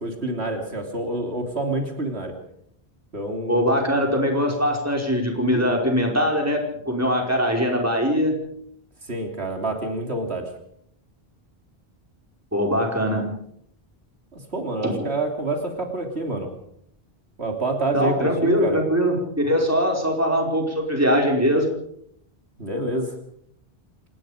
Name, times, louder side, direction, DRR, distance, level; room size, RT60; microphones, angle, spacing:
voice 1, 0.0-2.3 3.1-3.6 9.1-10.5 14.3-16.5 17.4-18.8 22.6-23.1, right 2 dB, 80° right, 3 dB, 3.5 m, -27 dB
voice 2, 3.5-8.4 12.5-13.3 14.8-15.0 17.9-21.7, equal, 15° right, 1 dB, 5.1 m, -22 dB
27.5 x 19.0 x 5.1 m, 0.70 s
omnidirectional pair, 1.1 m